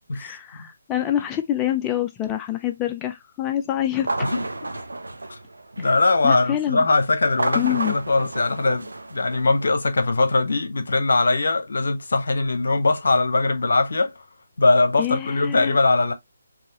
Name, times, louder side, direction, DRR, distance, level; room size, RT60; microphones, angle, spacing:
voice 1, 0.1-4.3 5.8-5.9 6.2-6.8 7.5-8.0 15.0-15.8, left 12 dB, 15° left, 0.4 m, -26 dB
sound 1, 3.9-6.2 7.2-9.7, right 2 dB, 80° right, 0.7 m, -31 dB
voice 2, 5.8-14.1 14.6-16.1, left 3 dB, 65° left, 1.1 m, -21 dB
4.7 x 2.8 x 2.9 m
figure-of-eight pair, 150°, 0 cm